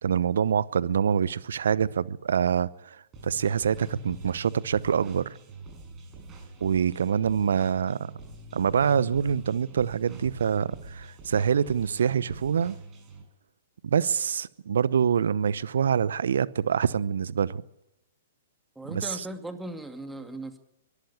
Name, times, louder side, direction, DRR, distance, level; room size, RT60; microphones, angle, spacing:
voice 1, 0.0-5.3 6.6-8.1 8.5-12.8 13.8-17.6 18.9-19.1, right 7 dB, 65° right, 0.8 m, -25 dB
sound 1, 3.1-13.2, right 2 dB, 25° right, 7.3 m, -45 dB
voice 2, 18.8-20.6, right 1 dB, 5° right, 2.3 m, -38 dB
23.5 x 13.5 x 8.5 m
figure-of-eight pair, 115°, 0 cm